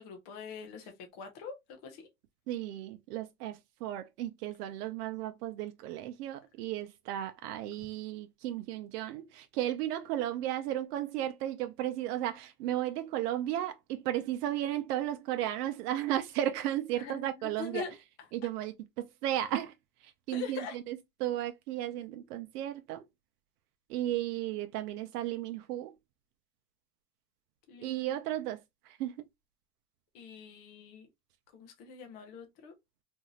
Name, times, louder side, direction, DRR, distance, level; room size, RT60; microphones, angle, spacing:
voice 1, 0.0-2.1 17.0-17.9 20.3-20.8 27.7-28.2 30.1-31.1 31.5-32.7, left 6 dB, 20° left, 0.3 m, -43 dB
voice 2, 2.5-17.8 18.3-19.7 20.0-23.0 23.9-26.0 27.8-29.1, right 12 dB, 85° right, 0.5 m, -34 dB
2.6 x 2.4 x 2.9 m
supercardioid pair, 155°, 45 cm